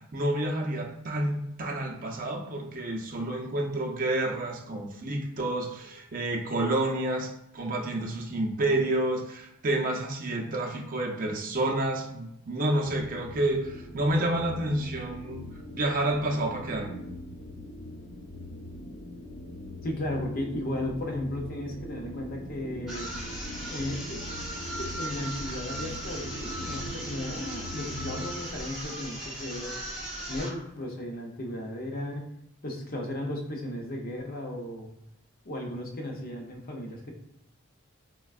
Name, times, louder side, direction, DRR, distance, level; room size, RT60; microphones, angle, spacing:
voice 1, 0.1-15.4 15.7-17.0, right 1 dB, 40° right, 0 dB, 0.5 m, -29 dB
sound 1, 12.8-28.3, left 1 dB, 90° left, 0.8 m, -41 dB
voice 2, 19.8-23.1 23.7-24.2 24.8-29.8 30.3-32.3 32.6-34.9 35.4-37.1, left 1 dB, 40° left, 1 dB, 0.6 m, -35 dB
sound 2, 22.9-30.6, right 1 dB, ahead, 1.0 m, -38 dB
4.3 x 2.2 x 2.3 m, 0.83 s
head